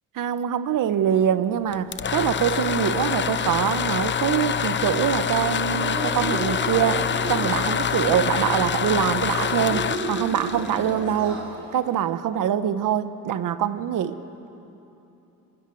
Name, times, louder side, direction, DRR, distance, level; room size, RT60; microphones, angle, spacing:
voice 1, 0.1-7.0 7.3-11.4 11.7-14.2, right 10 dB, 60° right, 12 dB, 1.3 m, -24 dB
sound 1, 1.7-11.5, left 7 dB, 30° left, 0.9 m, -26 dB
Yell / Cheering, 5.7-11.8, right 1 dB, 35° right, 5.2 m, -33 dB
27.5 x 19.5 x 8.0 m, 3.0 s
cardioid pair, 100°, 36 cm